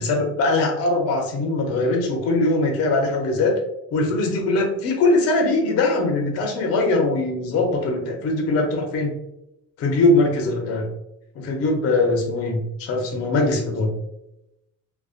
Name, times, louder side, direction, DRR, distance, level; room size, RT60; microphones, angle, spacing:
voice 1, 0.0-3.5 3.9-9.1 9.8-10.9 11.4-13.9, left 2 dB, 50° left, 2 dB, 0.5 m, -21 dB
2.5 x 2.2 x 2.3 m, 0.85 s
cardioid pair, 150°, 31 cm